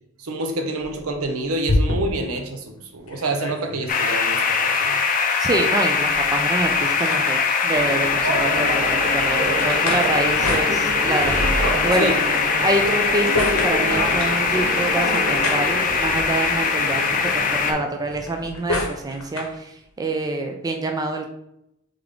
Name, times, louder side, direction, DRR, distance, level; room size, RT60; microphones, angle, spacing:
voice 1, 0.2-5.0 10.1-10.2 12.0-12.2, right 2 dB, 80° right, 4 dB, 0.7 m, -27 dB
sound 1, 0.8-2.4 2.8-2.9 3.1-4.2 5.8-7.7 9.6-11.3 12.6-14.4 15.1-16.5 18.0-19.6, left 2 dB, 80° left, 0.8 m, -29 dB
sound 2, 3.9-17.7, left 5 dB, 40° left, 0.5 m, -22 dB
voice 2, 5.4-12.1 12.6-21.3, right 2 dB, 15° right, 4 dB, 0.4 m, -26 dB
sound 3, 7.7-17.8, right 1 dB, 55° right, 1.0 m, -27 dB
3.6 x 3.4 x 3.6 m, 0.81 s
head